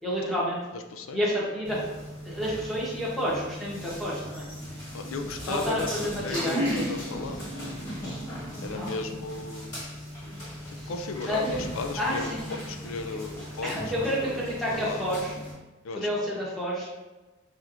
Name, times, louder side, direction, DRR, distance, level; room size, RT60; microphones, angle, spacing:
voice 1, 0.0-0.7 1.1-1.8 2.2-4.5 5.5-6.7 8.7-8.9 10.4-10.9 11.3-11.6 12.0-12.5 13.6-15.4 15.9-16.9, equal, ahead, -7 dB, 1.0 m, -30 dB
voice 2, 0.7-1.2 4.9-7.8 8.6-9.7 10.7-14.4 14.7-15.4 15.8-16.3, left 4 dB, 85° left, 6 dB, 0.4 m, -36 dB
sound 1, 1.6-15.5, equal, 15° left, 1.5 m, -36 dB
4.7 x 2.8 x 2.6 m, 1.2 s
head